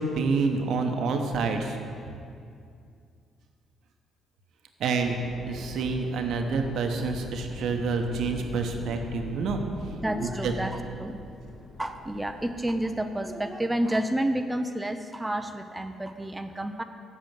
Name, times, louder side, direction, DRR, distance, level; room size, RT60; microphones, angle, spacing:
voice 1, 0.0-1.8 4.8-5.2 5.5-9.6 10.2-10.5, right 4 dB, 65° right, 5 dB, 0.9 m, -28 dB
sound 1, 5.0-13.1, left 1 dB, 60° left, 1.2 m, -42 dB
voice 2, 10.0-11.2 11.8-16.8, right 1 dB, 15° right, 7 dB, 0.6 m, -30 dB
8.0 x 6.2 x 7.6 m, 2.4 s
hypercardioid pair, 45°, 0 cm